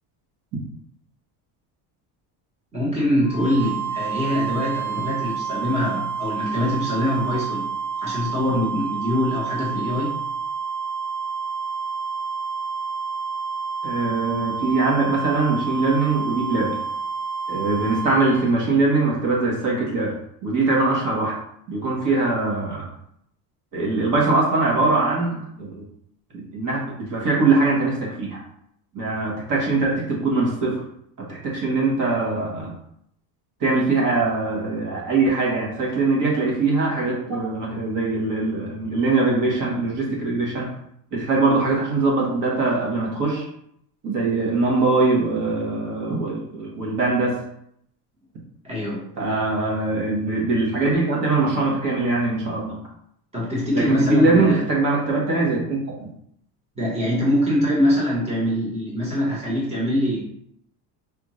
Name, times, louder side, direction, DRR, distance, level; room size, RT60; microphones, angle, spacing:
voice 1, 2.7-7.6 8.0-10.2 48.6-49.0 53.3-54.6 56.7-60.2, left 1 dB, 15° right, -6 dB, 1.1 m, -23 dB
sound 1, 3.2-18.5, right 5 dB, 10° left, 0.8 m, -29 dB
voice 2, 13.8-16.8 17.5-20.1 20.4-21.3 21.7-22.9 23.7-25.8 26.3-28.4 28.9-30.8 31.2-32.7 33.6-40.7 41.1-43.4 44.0-47.4 49.2-52.8 53.7-56.1, right 3 dB, 45° right, -3 dB, 1.2 m, -22 dB
5.1 x 2.5 x 3.0 m, 0.72 s
cardioid pair, 165°, 44 cm